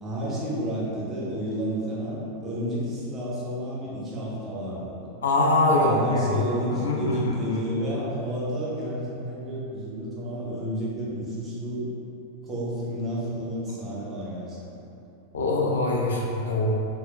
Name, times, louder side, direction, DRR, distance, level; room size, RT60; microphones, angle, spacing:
voice 1, 0.0-5.1 5.7-11.9 12.4-14.8, equal, 20° right, -7 dB, 0.8 m, -31 dB
voice 2, 5.2-6.4 6.7-7.3 15.3-16.7, left 2 dB, 65° left, -2 dB, 0.3 m, -23 dB
4.3 x 2.1 x 2.3 m, 2.9 s
figure-of-eight pair, 90°, 0 cm